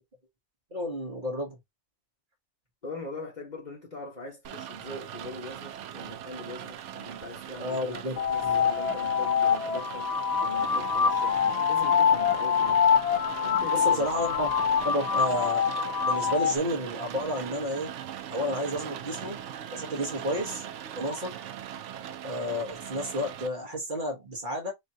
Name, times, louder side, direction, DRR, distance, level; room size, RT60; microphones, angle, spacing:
voice 1, 0.7-1.5 7.6-8.6 13.7-14.5 14.8-17.9 18.3-19.4 19.7-20.6 20.9-21.3 22.2-24.7, equal, 45° right, 1.4 m, -31 dB
voice 2, 2.8-11.4 11.7-12.8 13.4-14.3, left 2 dB, 40° left, 1.6 m, -42 dB
Rain, 4.4-23.5, right 10 dB, 85° right, 0.9 m, -40 dB
sound 1, 8.2-16.6, left 7 dB, 65° left, 0.4 m, -25 dB
4.2 x 3.0 x 2.8 m
omnidirectional pair, 1.2 m